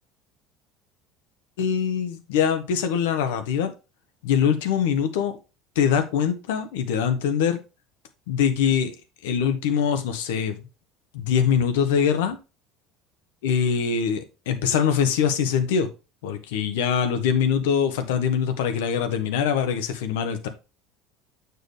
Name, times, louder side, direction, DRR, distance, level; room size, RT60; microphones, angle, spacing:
voice 1, 1.6-3.7 4.2-5.3 5.8-7.6 8.3-8.9 9.2-10.6 11.1-12.4 13.4-15.9 16.2-20.5, left 7 dB, 85° left, 1.0 m, -23 dB
7.8 x 4.6 x 3.2 m
supercardioid pair, 95°, 0 cm